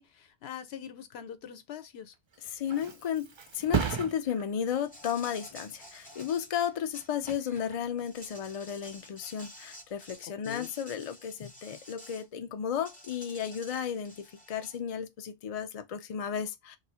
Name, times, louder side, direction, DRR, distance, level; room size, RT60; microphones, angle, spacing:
voice 1, 0.0-2.1 10.4-10.7, left 9 dB, 75° left, 0.9 m, -43 dB
Thump thud, 2.1-9.6 10.0-10.4, right 6 dB, 50° right, 0.3 m, -38 dB
voice 2, 2.5-3.3 3.5-16.8, left 8 dB, 55° left, 0.4 m, -34 dB
Insect, 4.8-7.6 8.0-12.2 12.8-14.8, equal, 10° left, 0.8 m, -50 dB
2.6 x 2.3 x 4.1 m
omnidirectional pair, 1.1 m